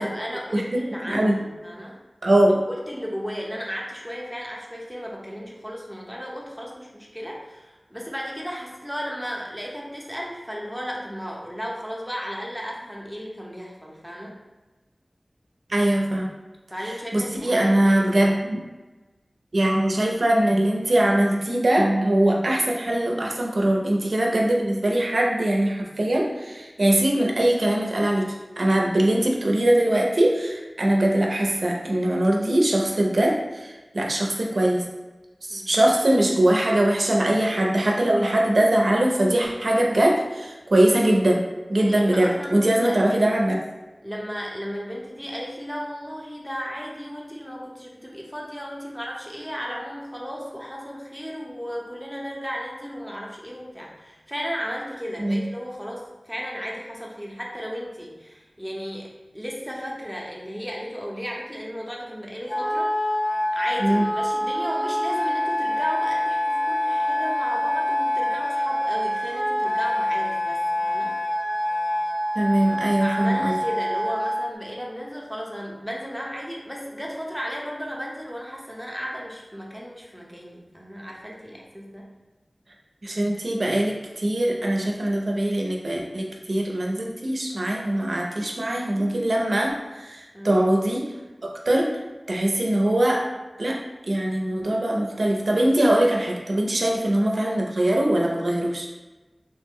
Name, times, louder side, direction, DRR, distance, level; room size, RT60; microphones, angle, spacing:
voice 1, 0.0-2.0 2.9-14.4 16.7-18.3 22.5-22.6 35.5-35.7 41.8-43.2 44.0-59.1 59.3-63.2 63.5-71.1 73.0-82.1 90.3-90.5, equal, ahead, -3 dB, 0.6 m, -34 dB
voice 2, 1.0-1.4 2.2-2.6 15.7-16.3 17.1-18.6 19.5-34.8 35.5-43.6 55.2-55.4 63.8-64.1 72.3-73.6 83.0-91.0 91.4-92.0 92.3-93.2 93.6-93.8 94.1-98.9, right 1 dB, 75° right, 0 dB, 0.5 m, -22 dB
Wind instrument woodwind instrument, 62.5-74.5, left 1 dB, 50° left, 0.4 m, -26 dB
3.3 x 2.1 x 3.5 m, 1.2 s
wide cardioid pair, 50°, 0 cm